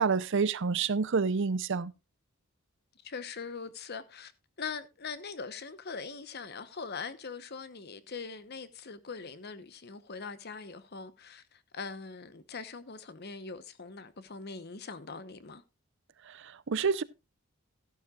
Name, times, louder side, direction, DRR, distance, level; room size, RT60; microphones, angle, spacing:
voice 1, 0.0-1.9 16.4-17.0, right 5 dB, 55° right, 0.6 m, -28 dB
voice 2, 3.0-4.3 4.6-15.6, left 5 dB, 50° left, 0.9 m, -42 dB
14.0 x 11.5 x 2.3 m
head